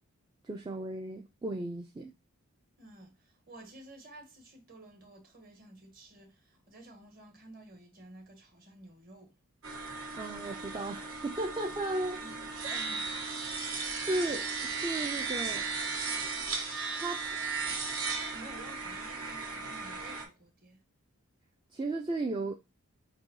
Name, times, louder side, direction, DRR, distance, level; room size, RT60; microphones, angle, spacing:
voice 1, 0.4-2.1 10.2-12.2 12.6-12.8 14.0-15.7 16.9-17.3 21.7-22.5, right 2 dB, 20° right, 0.3 m, -35 dB
voice 2, 2.8-9.3 12.2-13.1 17.4-17.8 18.1-20.8, right 2 dB, 40° right, 1.3 m, -53 dB
sound 1, 9.6-20.2, right 4 dB, 75° right, 1.3 m, -36 dB
5.4 x 2.6 x 2.6 m
head